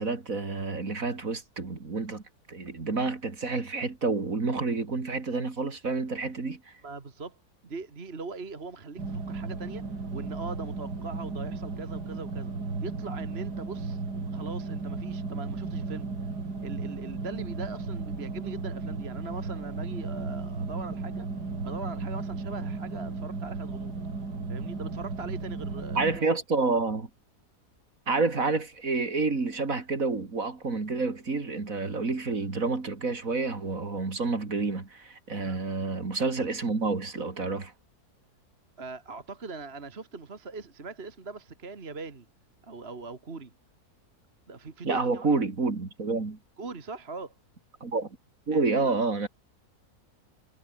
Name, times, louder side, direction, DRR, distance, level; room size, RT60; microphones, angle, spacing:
voice 1, 0.0-2.2 2.5-6.7 25.9-27.1 28.1-37.7 44.8-46.4 47.8-48.1 48.5-49.3, right 3 dB, 55° right, 3.3 m, -29 dB
voice 2, 6.8-7.4 7.6-9.8 10.1-12.5 12.8-16.1 16.6-21.3 21.6-23.9 24.5-26.2 35.4-35.6 38.8-42.3 42.6-43.5 44.5-45.3 46.6-47.3 48.5-49.0, right 4 dB, 40° right, 2.2 m, -41 dB
sound 1, 9.0-26.2, right 3 dB, 85° right, 4.2 m, -35 dB
omnidirectional pair, 1.7 m